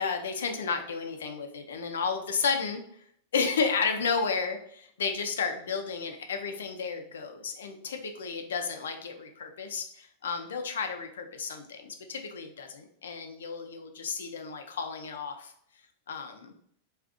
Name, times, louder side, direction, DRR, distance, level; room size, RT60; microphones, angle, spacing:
voice 1, 0.0-2.8 3.3-15.5 16.1-16.5, left 5 dB, 90° left, 5 dB, 0.5 m, -32 dB
3.6 x 2.4 x 2.4 m, 0.67 s
hypercardioid pair, 125°, 0 cm